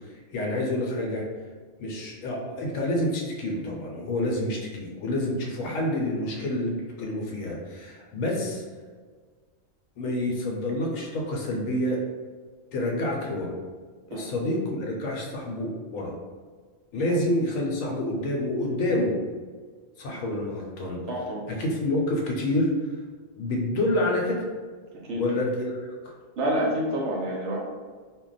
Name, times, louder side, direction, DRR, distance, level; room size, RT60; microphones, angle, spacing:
voice 1, 0.3-1.2 1.8-8.6 10.0-12.0 12.7-13.5 14.1-16.1 16.9-19.1 20.0-21.0 21.5-22.7 23.4-24.4 25.2-26.1, left 1 dB, 75° left, -1 dB, 1.0 m, -28 dB
voice 2, 21.1-21.4 25.0-25.2 26.4-27.6, right 1 dB, 65° right, -2 dB, 0.8 m, -27 dB
2.3 x 2.1 x 3.9 m, 1.5 s
omnidirectional pair, 1.5 m